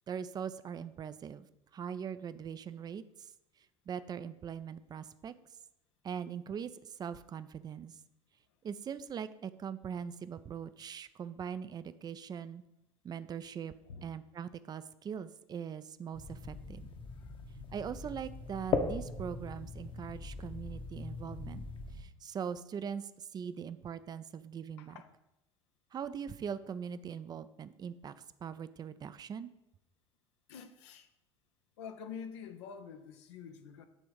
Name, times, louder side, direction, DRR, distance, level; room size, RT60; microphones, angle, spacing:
voice 1, 0.1-1.5 1.7-3.3 3.9-5.3 6.0-8.0 8.6-12.6 13.0-13.7 14.0-16.9 17.7-21.7 21.9-25.0 25.9-28.1 28.4-29.5, right 7 dB, 25° right, 0.4 m, -41 dB
sound 1, 16.1-22.0, left 4 dB, 35° left, 0.9 m, -39 dB
voice 2, 30.5-31.1 31.8-33.9, left 7 dB, 65° left, 0.6 m, -47 dB
9.7 x 3.5 x 5.2 m
figure-of-eight pair, 65°, 16 cm